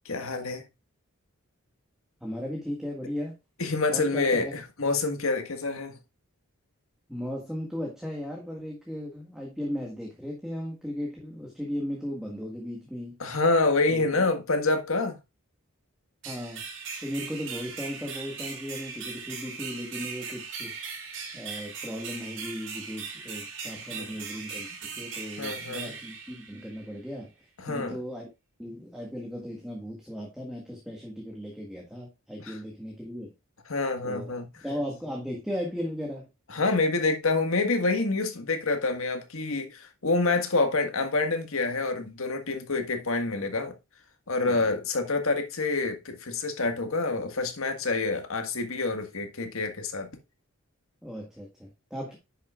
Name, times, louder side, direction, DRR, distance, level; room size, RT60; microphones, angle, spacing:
voice 1, 0.0-0.6 3.6-6.0 13.2-15.2 23.9-24.1 25.4-25.9 27.6-28.0 32.4-32.6 33.7-34.5 36.5-43.7 44.3-50.1, left 3 dB, 75° left, 1.7 m, -27 dB
voice 2, 2.2-3.4 3.9-4.5 7.1-13.2 13.9-14.2 16.2-16.6 17.0-20.7 21.3-24.7 25.0-27.3 27.7-28.3 28.6-33.3 34.0-34.3 34.6-36.3 44.4-44.7 51.0-52.2, equal, ahead, 1.8 m, -36 dB
sound 1, 16.2-26.9, right 5 dB, 60° right, 2.7 m, -39 dB
9.9 x 7.1 x 2.4 m
head